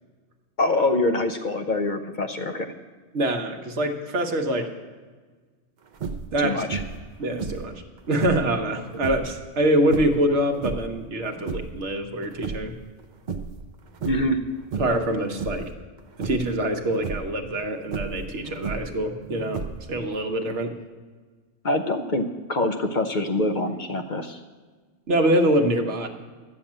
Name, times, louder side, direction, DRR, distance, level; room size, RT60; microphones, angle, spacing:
voice 1, 0.6-2.7 6.4-6.8 14.0-14.5 21.6-24.4, left 2 dB, 50° left, 6 dB, 0.8 m, -25 dB
voice 2, 3.1-4.7 6.3-6.6 7.2-7.7 8.1-12.7 14.7-15.7 16.2-19.6 19.9-20.8 25.1-26.1, right 1 dB, 75° right, 4 dB, 1.4 m, -24 dB
sound 1, 5.9-6.4 6.7-7.1 7.4-8.5 8.9-9.3 9.9-11.0 11.3-11.8 12.2-13.0 13.3-13.6 13.9-14.4 14.7-15.1 15.4-15.7 16.2-16.6 16.9-17.3 17.9-19.0 19.5-20.0, right 5 dB, 50° right, 0.7 m, -33 dB
11.5 x 7.1 x 8.6 m, 1.4 s
omnidirectional pair, 1.2 m